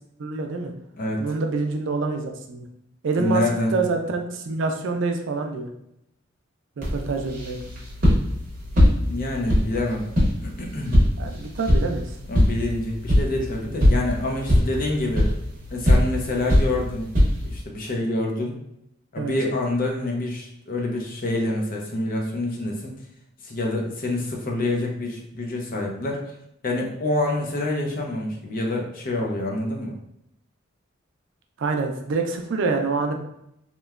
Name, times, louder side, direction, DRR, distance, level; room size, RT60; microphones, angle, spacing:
voice 1, 0.2-0.7 1.2-2.7 3.0-3.4 3.7-5.7 6.8-7.6 11.2-12.1 19.2-19.3 31.6-33.2, right 3 dB, 70° right, 4 dB, 0.4 m, -26 dB
voice 2, 3.2-3.8 8.9-10.1 10.4-11.0 12.3-15.3 15.7-17.0 17.4-18.6 19.1-23.0 23.4-26.2 26.6-29.9, left 2 dB, 45° left, 0 dB, 0.6 m, -27 dB
sound 1, 6.8-17.6, left 1 dB, 40° right, 0.8 m, -22 dB
2.9 x 2.1 x 2.3 m, 0.79 s
head